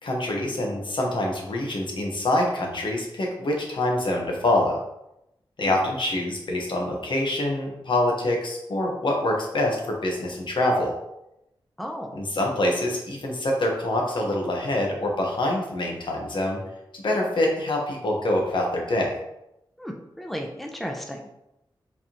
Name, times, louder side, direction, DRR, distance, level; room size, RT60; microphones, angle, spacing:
voice 1, 0.0-4.8 5.6-10.9 12.1-16.6 16.9-19.1, left 1 dB, 65° left, 0 dB, 1.1 m, -25 dB
voice 2, 11.8-12.1 19.8-21.3, equal, ahead, 2 dB, 0.6 m, -34 dB
4.8 x 3.5 x 2.9 m, 0.86 s
wide cardioid pair, 70°, 9 cm